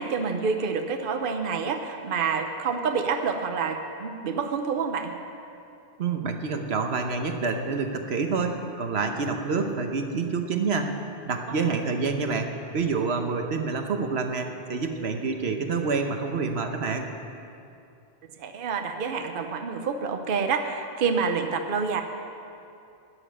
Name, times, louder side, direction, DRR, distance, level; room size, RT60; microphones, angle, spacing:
voice 1, 0.0-5.2 18.4-22.0, right 5 dB, 60° right, 5 dB, 0.9 m, -28 dB
voice 2, 6.0-17.1, right 4 dB, 80° right, 5 dB, 1.2 m, -27 dB
12.5 x 7.1 x 9.9 m, 2.6 s
omnidirectional pair, 1.1 m